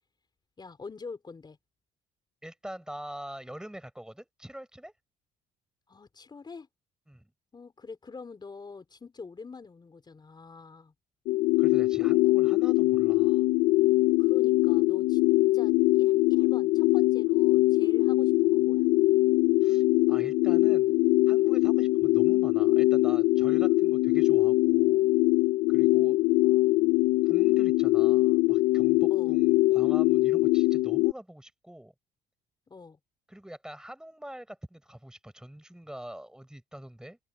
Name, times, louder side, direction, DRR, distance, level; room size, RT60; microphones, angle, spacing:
voice 1, 0.6-1.6 5.9-6.7 7.5-10.9 12.0-12.2 14.2-18.9 25.7-27.0 29.1-29.4 32.7-33.0, left 4 dB, 25° left, 4.4 m, -46 dB
voice 2, 2.4-4.9 7.1-7.3 11.6-13.5 19.6-20.9 21.3-25.1 25.7-26.1 27.2-31.9 33.3-37.2, right 1 dB, 5° right, 5.1 m, -45 dB
sound 1, 11.3-31.1, left 20 dB, 85° left, 0.4 m, -22 dB
open air
cardioid pair, 110°, 17 cm